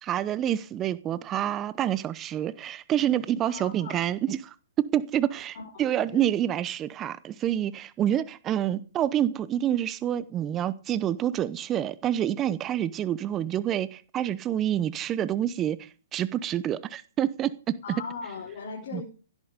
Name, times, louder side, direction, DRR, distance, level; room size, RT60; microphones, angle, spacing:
voice 1, 0.0-17.8 18.9-19.0, right 11 dB, 25° right, 0.8 m, -28 dB
voice 2, 3.5-4.0 5.7-5.9 6.1-6.3 17.8-19.0, left 5 dB, 55° left, 5.5 m, -38 dB
16.5 x 12.0 x 5.2 m
hypercardioid pair, 125°, 0 cm